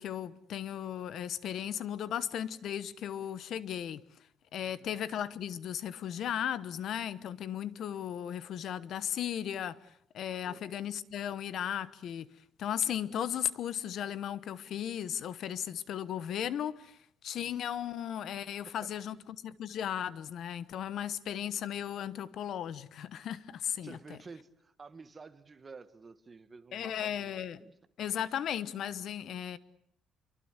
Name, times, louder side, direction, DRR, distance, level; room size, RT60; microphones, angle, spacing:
voice 1, 0.0-4.0 4.5-12.3 12.6-19.2 19.4-24.0 26.7-27.6 28.0-29.6, left 10 dB, 55° left, 1.0 m, -36 dB
voice 2, 4.6-5.0 10.4-10.6 17.3-17.5 23.8-27.7, right 4 dB, 25° right, 1.4 m, -51 dB
26.5 x 23.5 x 8.1 m
cardioid pair, 165°, 0 cm